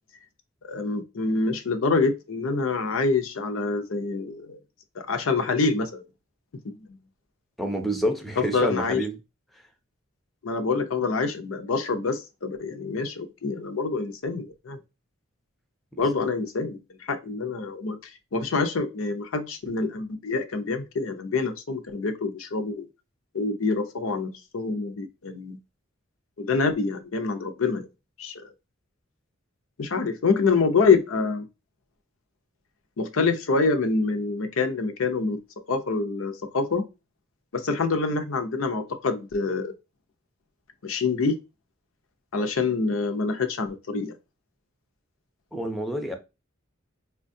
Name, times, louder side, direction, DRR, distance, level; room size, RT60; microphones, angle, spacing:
voice 1, 0.7-4.6 5.0-6.0 8.4-9.0 10.4-14.8 16.0-18.0 18.3-22.9 23.3-25.6 26.4-27.9 28.2-28.3 29.8-31.4 33.0-35.4 35.7-36.8 37.5-39.7 40.8-41.4 42.3-44.1, left 4 dB, 80° left, 0.6 m, -26 dB
voice 2, 7.6-9.2 15.9-16.0 45.5-46.2, right 1 dB, ahead, 0.5 m, -28 dB
4.3 x 2.2 x 2.6 m
head